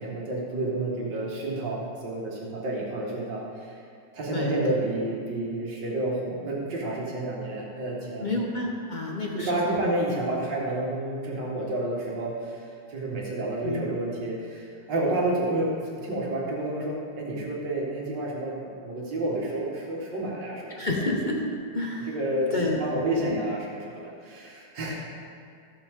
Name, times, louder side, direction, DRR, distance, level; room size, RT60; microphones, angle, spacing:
voice 1, 0.0-3.8 4.1-8.4 9.4-20.9 22.1-25.0, right 1 dB, 65° right, -3 dB, 2.3 m, -30 dB
voice 2, 4.3-4.8 8.2-9.8 13.6-13.9 20.8-21.4 21.7-22.2 22.5-23.4, left 1 dB, 35° left, -1 dB, 0.8 m, -29 dB
15.5 x 6.8 x 3.7 m, 2.3 s
omnidirectional pair, 2.1 m